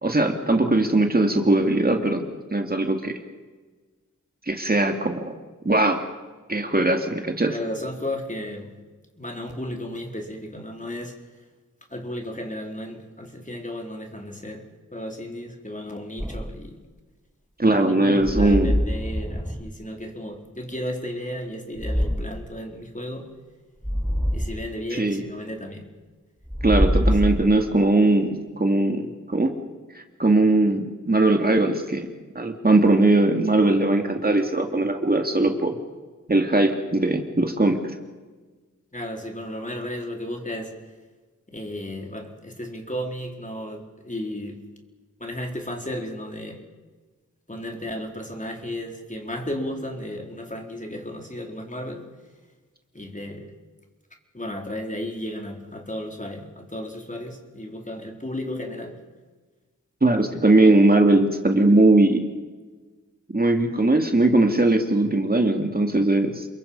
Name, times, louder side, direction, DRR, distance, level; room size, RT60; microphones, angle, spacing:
voice 1, 0.0-2.2 2.5-3.2 4.5-5.3 5.6-6.1 6.5-7.5 17.6-18.7 24.9-25.2 26.6-29.5 29.9-32.1 32.3-35.8 36.3-37.8 60.0-62.2 63.3-66.5, right 2 dB, 30° right, 4 dB, 2.4 m, -20 dB
voice 2, 7.5-8.7 9.2-11.2 11.9-16.8 17.8-23.3 24.3-25.9 26.9-27.5 38.9-40.8 41.5-44.7 45.2-46.6 47.5-52.1 52.9-53.5 54.3-59.0, left 1 dB, 25° left, 2 dB, 4.1 m, -34 dB
sound 1, 16.2-16.7 18.2-19.8 21.8-22.4 23.8-24.6 26.5-27.9, equal, ahead, 1.1 m, -24 dB
29.0 x 22.0 x 5.6 m, 1.3 s
cardioid pair, 50°, 31 cm